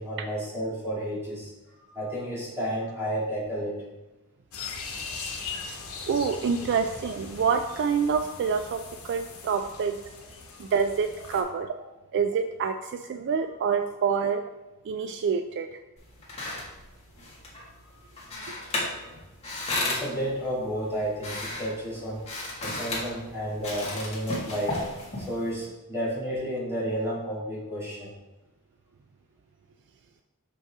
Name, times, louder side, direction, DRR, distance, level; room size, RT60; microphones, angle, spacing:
voice 1, 0.0-1.5 1.8-3.8 5.4-5.9 6.6-6.7 19.9-22.2 22.6-24.8 25.3-28.1, equal, 10° right, -8 dB, 2.4 m, -31 dB
sound 1, 4.5-11.4, left 4 dB, 80° left, 1.2 m, -40 dB
voice 2, 6.1-10.0 10.6-11.7 12.1-14.4 14.9-15.8, right 6 dB, 55° right, 7 dB, 0.3 m, -27 dB
sound 2, 16.0-25.6, left 2 dB, 30° left, 1.8 m, -35 dB
6.3 x 5.4 x 3.5 m, 1.0 s
head